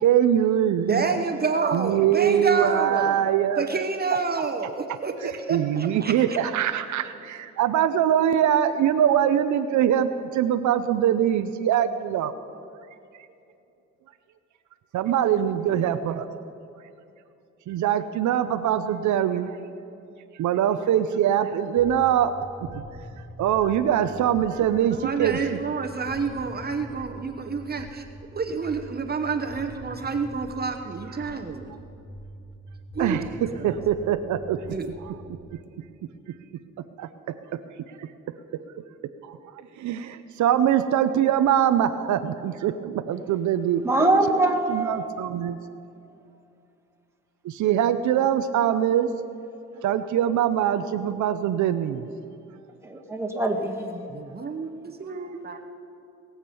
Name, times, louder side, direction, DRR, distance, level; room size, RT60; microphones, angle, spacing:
voice 1, 0.0-1.2 1.7-3.8 5.2-12.3 14.9-16.3 17.7-19.5 20.4-22.3 22.7-22.8 23.4-25.6 33.0-34.6 35.1-35.2 37.0-37.1 39.3-39.4 39.8-43.8 44.4-45.6 47.5-49.1 49.8-52.0, right 10 dB, 75° right, 10 dB, 0.7 m, -23 dB
voice 2, 0.9-3.2 3.6-6.1 24.9-28.1 28.3-31.7 32.9-33.2 33.5-33.8 34.7-34.9 54.1-55.6, right 4 dB, 30° right, 5 dB, 1.0 m, -29 dB
sound 1, 21.8-35.5, equal, 30° left, 1.9 m, -43 dB
voice 3, 43.8-45.0 52.8-54.1, right 2 dB, 10° right, 1 dB, 1.6 m, -23 dB
20.5 x 7.4 x 6.9 m, 2.7 s
cardioid pair, 90°, 30 cm